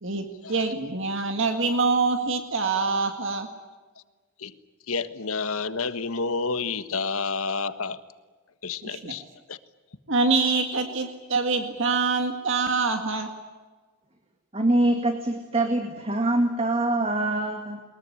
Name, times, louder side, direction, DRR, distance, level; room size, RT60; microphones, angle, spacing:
voice 1, 0.0-3.5 8.8-9.1 10.1-13.3, right 4 dB, 60° right, 5 dB, 2.0 m, -25 dB
voice 2, 4.9-8.0 8.6-9.2 9.5-9.6, left 4 dB, 80° left, 11 dB, 1.4 m, -29 dB
voice 3, 14.5-17.8, right 1 dB, 25° right, 5 dB, 2.0 m, -24 dB
22.5 x 21.5 x 10.0 m, 1.4 s
head